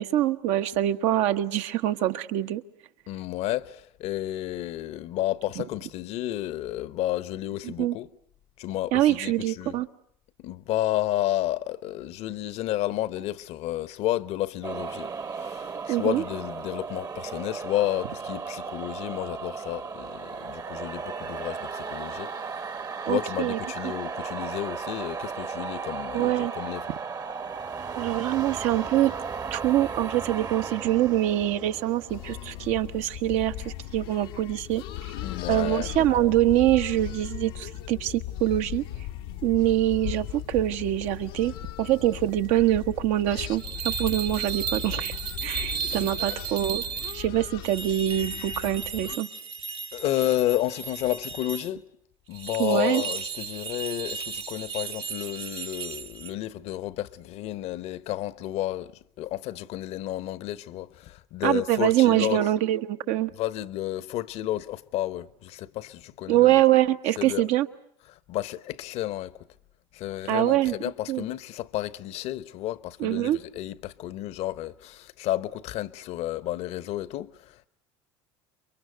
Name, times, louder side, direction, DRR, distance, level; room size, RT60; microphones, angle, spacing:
voice 1, 0.0-2.6 5.6-5.7 7.6-8.0 8.9-9.9 15.9-16.2 23.1-23.6 26.1-26.5 27.9-29.1 29.5-34.8 35.5-38.8 39.4-41.5 41.8-45.1 45.4-46.8 47.1-49.3 52.6-53.0 61.4-63.3 66.3-67.7 70.3-70.7 71.1-71.2 73.0-73.4, right 13 dB, 65° right, 1.2 m, -24 dB
voice 2, 3.1-8.1 8.6-9.8 10.4-22.7 23.1-26.9 35.2-35.9 46.0-46.4 49.9-51.9 52.3-62.5 63.4-66.6 67.2-67.4 68.1-69.4 69.9-77.7, left 14 dB, 60° left, 1.0 m, -31 dB
sound 1, 14.6-33.2, right 5 dB, 30° right, 1.1 m, -35 dB
sound 2, 32.1-49.2, left 12 dB, 75° left, 1.1 m, -37 dB
sound 3, 43.6-47.2 47.6-51.7 52.3-56.3, right 6 dB, 45° right, 1.5 m, -35 dB
29.0 x 23.0 x 8.0 m
hypercardioid pair, 85°, 12 cm